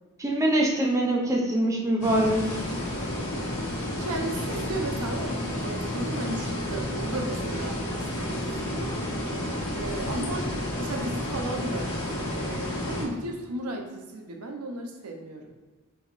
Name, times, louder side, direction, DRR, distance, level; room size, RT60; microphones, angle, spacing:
voice 1, 0.2-2.6, right 1 dB, 15° right, -2 dB, 0.5 m, -24 dB
sound 1, 2.0-13.1, left 1 dB, 70° left, 1.0 m, -31 dB
voice 2, 3.9-8.9 9.7-10.5 10.8-15.5, right 2 dB, 80° right, 3 dB, 0.7 m, -35 dB
3.9 x 2.9 x 4.0 m, 1.3 s
head